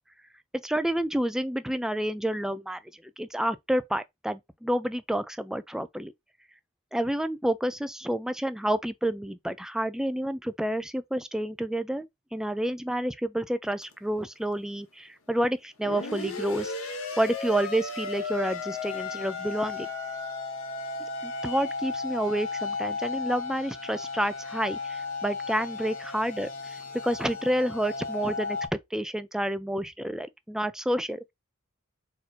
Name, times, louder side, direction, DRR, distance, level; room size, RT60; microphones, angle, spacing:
voice 1, 0.6-2.8 3.2-6.1 6.9-12.1 12.3-16.7 17.2-19.9 21.2-26.5 27.0-28.6 28.9-31.3, right 1 dB, 5° right, 0.4 m, -29 dB
sound 1, 13.8-13.9 15.8-28.7, left 3 dB, 80° left, 1.3 m, -35 dB
4.2 x 2.7 x 4.3 m
head